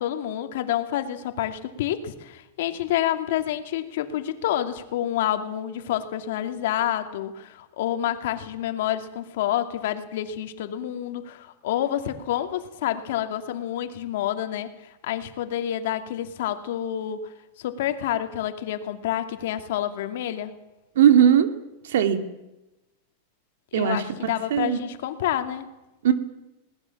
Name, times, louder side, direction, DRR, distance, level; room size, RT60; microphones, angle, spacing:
voice 1, 0.0-14.7 15.0-17.2 17.6-20.5 23.7-25.7, left 11 dB, 70° left, 8 dB, 2.5 m, -28 dB
voice 2, 20.9-21.5 21.8-22.2 23.7-24.8 26.0-26.1, right 9 dB, 80° right, 9 dB, 2.6 m, -19 dB
21.5 x 18.5 x 7.3 m, 0.95 s
supercardioid pair, 145°, 0 cm